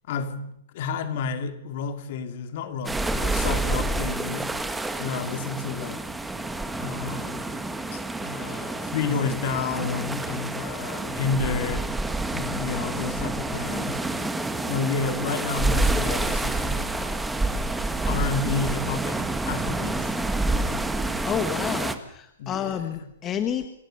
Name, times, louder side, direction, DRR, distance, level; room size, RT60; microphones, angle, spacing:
voice 1, 0.1-4.5 5.0-6.1 6.7-7.7 7.9-11.9 12.3-14.0 14.7-17.2 18.1-20.1 22.4-23.1, left 5 dB, 55° left, 2.5 m, -30 dB
sound 1, 2.8-21.9, right 2 dB, 5° right, 1.4 m, -28 dB
voice 2, 21.2-23.7, left 9 dB, 25° left, 1.2 m, -30 dB
26.5 x 16.0 x 6.6 m
hypercardioid pair, 140°, 0 cm